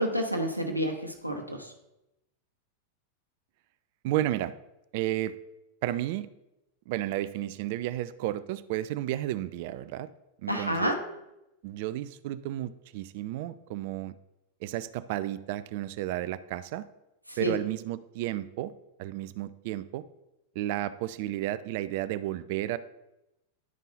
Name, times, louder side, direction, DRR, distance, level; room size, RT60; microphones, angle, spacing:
voice 1, 0.0-1.7 10.5-11.0 17.3-17.5, equal, 90° right, 3 dB, 1.0 m, -29 dB
voice 2, 4.0-4.5 4.9-5.3 5.8-6.3 6.9-10.1 10.4-10.9 11.6-14.2 14.6-16.9 17.4-18.7 19.0-20.0 20.6-22.8, right 14 dB, 50° right, 14 dB, 0.4 m, -32 dB
10.5 x 5.4 x 4.0 m, 0.89 s
figure-of-eight pair, 90°, 0 cm